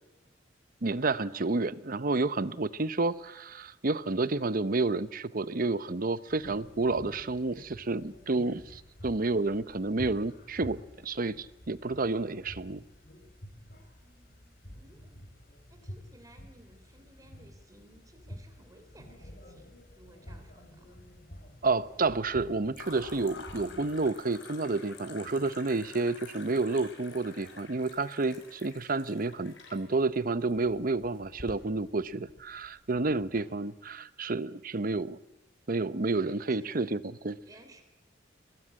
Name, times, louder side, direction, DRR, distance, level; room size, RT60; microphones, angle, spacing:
voice 1, 0.8-10.8 11.0-12.8 21.6-35.2 35.7-37.4, right 3 dB, 50° right, 15 dB, 0.8 m, -30 dB
sound 1, 6.3-24.1, equal, 50° left, 4.2 m, -49 dB
voice 2, 14.0-15.1 15.7-21.0 36.3-36.9 37.4-37.8, right 1 dB, 20° right, 5 dB, 3.5 m, -57 dB
sound 2, 19.6-20.3 20.6-21.3 22.7-33.4, left 3 dB, 75° left, 5.8 m, -50 dB
22.5 x 19.5 x 9.8 m, 0.94 s
head